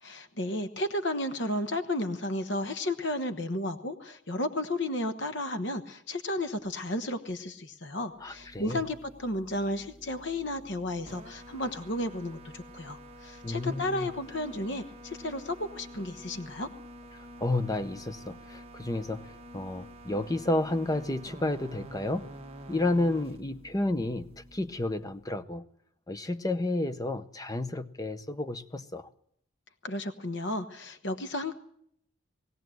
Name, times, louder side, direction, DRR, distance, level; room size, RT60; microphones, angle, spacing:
voice 1, 0.0-16.7 29.8-31.5, left 1 dB, 55° left, 1.2 m, -33 dB
sound 1, 8.1-25.4, equal, 30° right, 1.4 m, -49 dB
voice 2, 8.2-8.8 13.4-14.1 17.1-22.3 22.7-25.7 26.1-29.1, left 2 dB, 15° left, 0.8 m, -31 dB
20.5 x 16.5 x 7.8 m
head